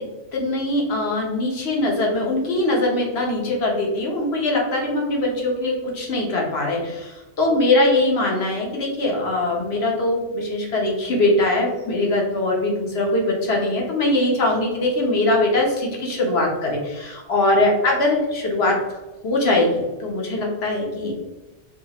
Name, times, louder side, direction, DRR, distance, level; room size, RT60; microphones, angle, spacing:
voice 1, 0.3-18.8 19.2-21.1, left 2 dB, 60° left, -1 dB, 1.2 m, -21 dB
4.8 x 2.4 x 2.9 m, 1.2 s
omnidirectional pair, 1.2 m